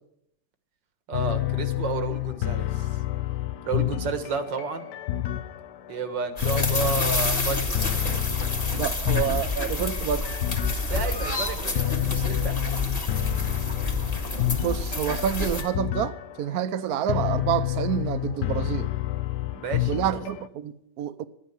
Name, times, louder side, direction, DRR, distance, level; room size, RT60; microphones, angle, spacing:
sound 1, 1.1-20.5, left 15 dB, 75° left, 1.3 m, -29 dB
voice 1, 1.1-2.9 3.6-4.9 5.9-7.8 10.7-12.6 19.5-20.2, right 5 dB, 85° right, 2.1 m, -31 dB
sound 2, 6.4-15.6, left 2 dB, 20° left, 1.8 m, -29 dB
voice 2, 8.8-10.4 14.6-18.9 19.9-21.3, right 10 dB, 65° right, 1.1 m, -28 dB
12.5 x 9.7 x 9.2 m
omnidirectional pair, 1.9 m